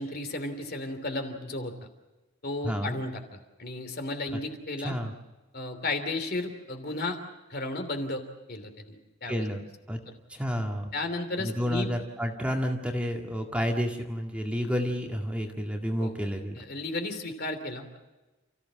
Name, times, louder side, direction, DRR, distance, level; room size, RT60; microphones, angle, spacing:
voice 1, 0.0-1.7 2.4-4.9 5.5-7.2 7.5-8.2 8.5-9.4 10.1-10.2 10.9-11.9 16.0-16.1 16.6-18.0, left 2 dB, 45° left, 6 dB, 3.1 m, -34 dB
voice 2, 2.6-3.0 4.8-5.1 9.3-10.0 10.3-10.9 11.4-16.5, equal, 5° right, 2 dB, 2.0 m, -30 dB
30.0 x 15.5 x 7.5 m, 1.1 s
head